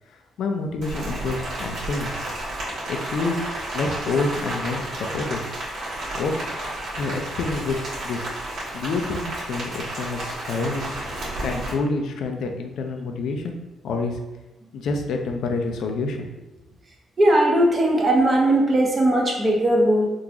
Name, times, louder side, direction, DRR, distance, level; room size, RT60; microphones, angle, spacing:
voice 1, 0.4-2.1 2.9-5.4 6.1-6.3 7.0-7.8 8.0-8.3 8.7-13.6 13.8-14.2 14.7-16.3, left 3 dB, 75° left, 4 dB, 0.4 m, -28 dB
Rain, 0.8-11.7, right 1 dB, 70° right, 1.4 m, -32 dB
voice 2, 17.2-20.1, right 1 dB, 30° right, 0 dB, 0.7 m, -18 dB
3.8 x 2.5 x 2.9 m, 1.1 s
cardioid pair, 90°, 0 cm